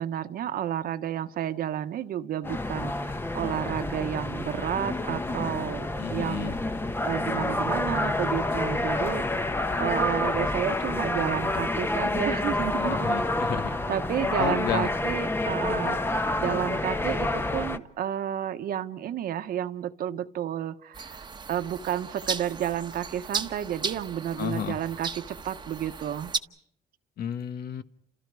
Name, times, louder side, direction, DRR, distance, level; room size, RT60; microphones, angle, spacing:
voice 1, 0.0-6.6 7.0-9.2 9.8-13.1 13.9-26.3, right 10 dB, 60° right, 10 dB, 1.2 m, -31 dB
sound 1, 2.4-17.8, left 2 dB, 15° left, 1.0 m, -28 dB
voice 2, 6.0-6.5 12.8-13.8 14.4-14.9 24.4-24.8 27.2-27.8, left 9 dB, 65° left, 11 dB, 1.3 m, -32 dB
sound 2, 20.9-26.4, right 5 dB, 25° right, 1.2 m, -36 dB
30.0 x 28.0 x 4.9 m, 0.69 s
cardioid pair, 110°, 17 cm